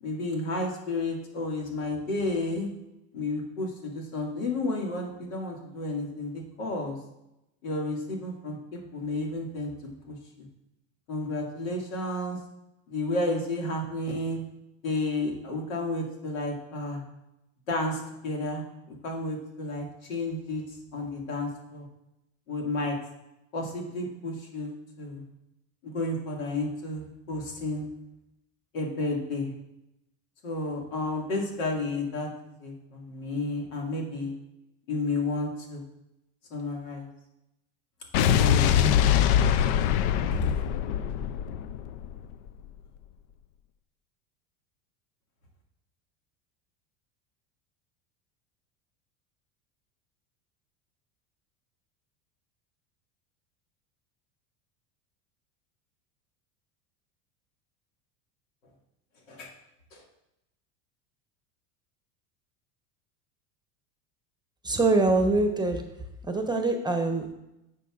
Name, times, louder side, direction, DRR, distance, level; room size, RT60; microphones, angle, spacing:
voice 1, 0.0-2.7 3.1-7.0 7.6-9.7 10.1-10.5 11.1-12.4 12.9-14.4 14.8-17.0 17.7-20.6 20.9-21.9 22.5-23.0 23.5-25.2 25.8-27.9 28.7-29.5 30.4-32.3 32.6-34.3 34.9-35.8 36.5-37.1 38.2-39.0 40.3-40.5 59.3-59.5 59.9-60.0, left 2 dB, 85° left, 0 dB, 2.1 m, -31 dB
Explosion, 38.1-42.5, left 10 dB, 65° left, 0.5 m, -23 dB
voice 2, 64.6-65.8 66.2-67.3, right 2 dB, 10° right, 5 dB, 0.8 m, -24 dB
10.5 x 6.9 x 2.4 m, 0.88 s
supercardioid pair, 105°, 39 cm